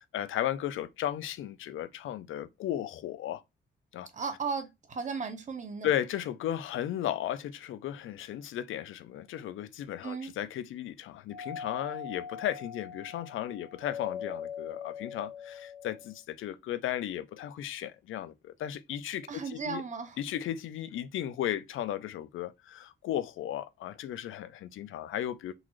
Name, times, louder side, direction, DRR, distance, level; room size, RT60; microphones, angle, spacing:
voice 1, 0.0-3.4 3.9-4.1 5.8-19.8 20.2-25.5, left 11 dB, 90° left, 0.4 m, -35 dB
voice 2, 4.1-5.9 10.0-10.3 19.3-20.2, right 5 dB, 40° right, 0.7 m, -35 dB
Doorbell, 11.3-16.2, left 7 dB, 5° right, 0.7 m, -41 dB
3.9 x 2.5 x 3.1 m
wide cardioid pair, 140°, 20 cm